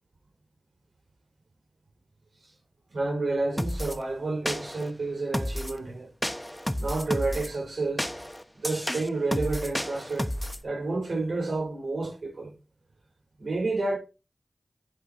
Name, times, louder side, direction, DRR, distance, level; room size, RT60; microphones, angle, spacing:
voice 1, 2.9-6.1 6.8-8.1 8.6-10.3 10.6-12.5 13.4-14.0, right 3 dB, 85° right, 5.2 m, -30 dB
sound 1, 3.6-4.0 4.5-4.9 5.3-5.8 6.2-7.5 8.0-10.6, equal, 10° left, 1.1 m, -31 dB
11.5 x 4.9 x 5.2 m
cardioid pair, 45°, 0 cm